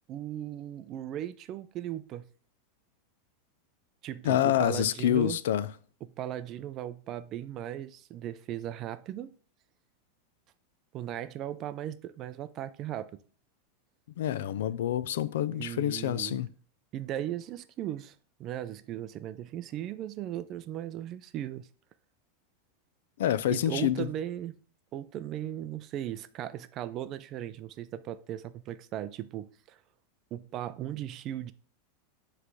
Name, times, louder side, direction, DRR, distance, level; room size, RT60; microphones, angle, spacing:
voice 1, 0.1-2.3 4.0-5.4 6.0-9.3 10.9-13.2 15.6-16.4 16.9-18.1 18.4-21.7 23.5-24.6 24.9-29.8 30.3-31.5, right 11 dB, 30° right, 0.4 m, -37 dB
voice 2, 4.2-5.7 14.2-16.5 23.2-24.1, left 11 dB, 80° left, 0.4 m, -27 dB
8.2 x 3.3 x 4.8 m
supercardioid pair, 165°, 0 cm